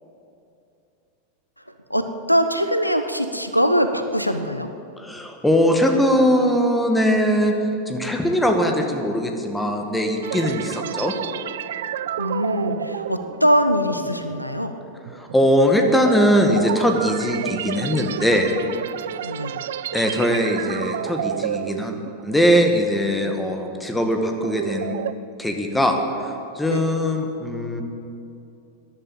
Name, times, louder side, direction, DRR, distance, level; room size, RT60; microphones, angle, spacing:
voice 1, 1.9-4.7 12.2-14.7 19.2-19.6 26.7-26.8, equal, 90° left, 9 dB, 0.8 m, -22 dB
voice 2, 5.0-7.5 7.9-11.1 15.2-18.5 19.9-21.9 22.2-25.0 25.4-27.8, equal, 5° left, 4 dB, 1.8 m, -20 dB
sound 1, 10.2-22.7 23.1-23.3 23.8-25.1, right 11 dB, 60° right, 0.4 m, -31 dB
13.5 x 11.0 x 8.9 m, 2.7 s
figure-of-eight pair, 90°, 0 cm